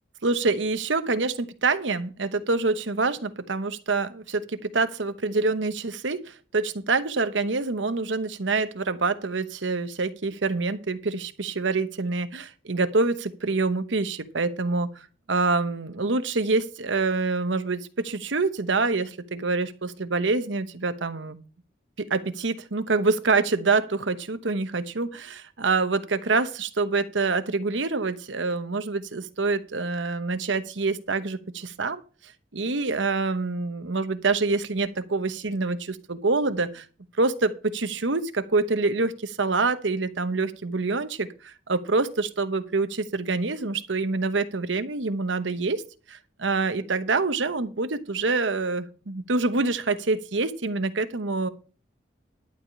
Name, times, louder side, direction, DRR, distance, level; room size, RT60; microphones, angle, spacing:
voice 1, 0.2-21.4 22.0-32.0 32.5-36.9 37.2-45.8 46.1-51.5, right 3 dB, 80° right, 11 dB, 1.0 m, -26 dB
11.5 x 4.9 x 8.5 m, 0.37 s
head